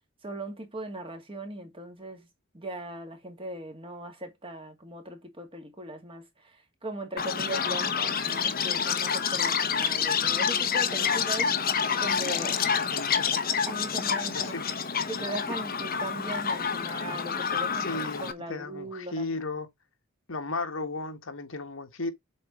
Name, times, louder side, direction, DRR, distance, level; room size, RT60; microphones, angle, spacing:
voice 1, 0.2-2.3 2.5-6.6 6.8-11.5 12.0-12.6 13.7-14.5 15.1-19.4, right 1 dB, 25° right, 2.2 m, -39 dB
Chirp tweet, 7.2-18.3, left 7 dB, 45° left, 1.1 m, -28 dB
voice 2, 12.3-13.4 14.3-14.6 17.7-19.7 20.3-22.1, left 3 dB, 75° left, 1.7 m, -35 dB
7.8 x 4.4 x 4.5 m
head